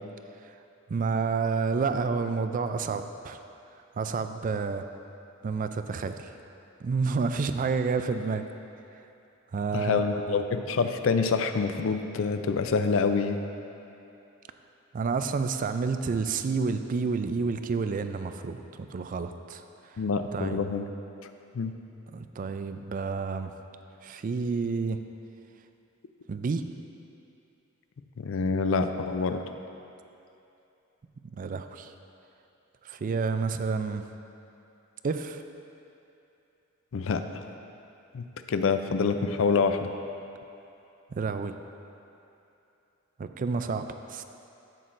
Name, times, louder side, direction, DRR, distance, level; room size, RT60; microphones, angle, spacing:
voice 1, 0.9-3.4 4.0-4.9 5.4-6.3 6.8-8.4 9.5-10.4 14.9-19.6 20.3-20.6 22.1-23.5 24.0-25.0 26.3-26.6 31.3-31.9 32.8-34.0 35.0-35.4 41.1-41.5 43.2-44.2, right 4 dB, 40° right, 8 dB, 0.3 m, -29 dB
voice 2, 9.7-13.4 20.0-20.9 21.5-21.7 28.2-29.4 36.9-37.4 38.1-39.9, left 4 dB, 70° left, 8 dB, 0.4 m, -26 dB
12.0 x 7.7 x 2.6 m, 2.8 s
head